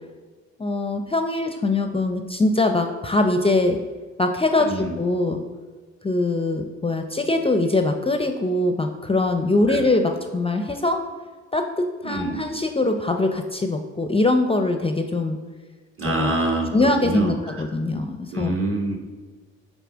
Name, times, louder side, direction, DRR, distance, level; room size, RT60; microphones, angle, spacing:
voice 1, 0.6-3.8 4.2-5.4 6.0-11.0 11.5-15.4 16.0-16.3 16.7-18.5, left 2 dB, 20° left, 5 dB, 0.5 m, -22 dB
voice 2, 4.6-4.9 9.7-9.8 12.0-12.4 16.0-17.6 18.3-19.0, right 2 dB, 45° right, 1 dB, 1.5 m, -26 dB
5.8 x 4.0 x 6.1 m, 1.4 s
cardioid pair, 75°, 30 cm